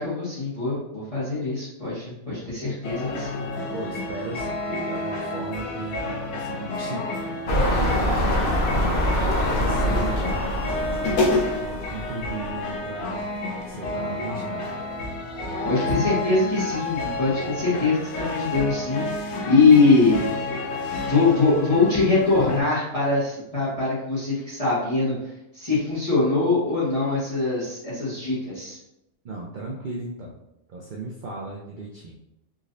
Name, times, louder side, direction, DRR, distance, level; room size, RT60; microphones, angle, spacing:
voice 1, 0.0-3.4 15.6-19.1 19.5-20.2 21.1-25.1 25.5-28.8, left 3 dB, 25° left, -11 dB, 1.5 m, -22 dB
sound 1, 2.8-22.6, left 2 dB, 85° left, 1.1 m, -30 dB
voice 2, 3.7-7.3 7.7-13.3 13.7-14.7 29.2-30.4 30.7-32.1, right 2 dB, 75° right, -1 dB, 0.4 m, -36 dB
sound 2, 7.5-12.5 13.1-13.2, equal, 55° left, 0.7 m, -24 dB
3.8 x 3.0 x 2.5 m, 0.84 s
omnidirectional pair, 1.4 m